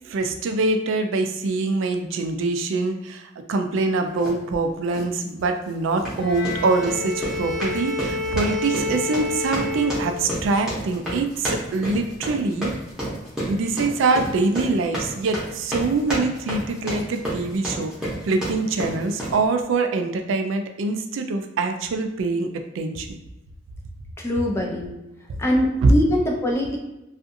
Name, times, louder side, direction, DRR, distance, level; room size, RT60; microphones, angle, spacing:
voice 1, 0.0-12.8 13.4-17.9 18.2-23.1 25.8-25.9, right 3 dB, 75° right, 6 dB, 0.3 m, -24 dB
sound 1, 4.2-4.4 4.9-5.2 5.9-19.4, equal, 5° right, 0.8 m, -31 dB
Bowed string instrument, 6.2-10.6, left 3 dB, 65° left, 0.7 m, -29 dB
voice 2, 24.2-24.9 25.4-26.8, left 1 dB, 15° left, 0 dB, 0.3 m, -22 dB
2.5 x 2.4 x 2.6 m, 0.97 s
head